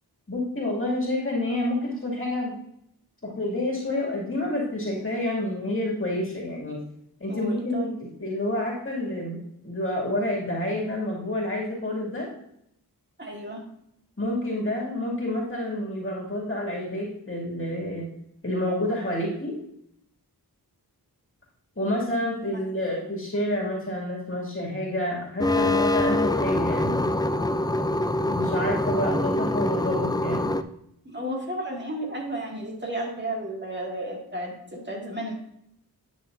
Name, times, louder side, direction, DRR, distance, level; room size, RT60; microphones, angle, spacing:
voice 1, 0.3-2.5 3.2-6.8 7.2-12.3 14.2-18.1 18.4-19.6 21.8-27.0 28.3-30.5, left 1 dB, 35° left, -4 dB, 2.4 m, -28 dB
voice 2, 7.3-7.9 13.2-13.6 22.5-22.8 31.1-35.3, right 1 dB, 30° right, -1 dB, 2.1 m, -33 dB
sound 1, 25.4-30.6, left 1 dB, 10° left, 0.4 m, -24 dB
9.8 x 6.3 x 2.6 m, 0.75 s
wide cardioid pair, 70°, 39 cm